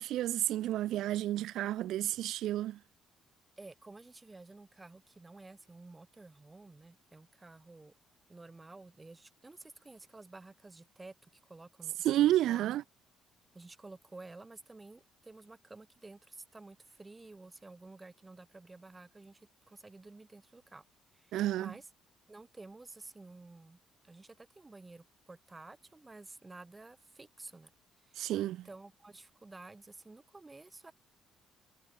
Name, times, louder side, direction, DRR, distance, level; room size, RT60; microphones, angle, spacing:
voice 1, 0.0-2.8 12.0-12.8 21.3-21.7 28.2-28.6, right 13 dB, 65° right, 0.5 m, -30 dB
voice 2, 3.6-7.9 8.3-12.7 13.5-20.8 21.1-21.9 22.3-23.8 24.0-27.7 28.0-30.9, right 3 dB, 10° right, 3.7 m, -52 dB
cardioid pair, 175°, 0 cm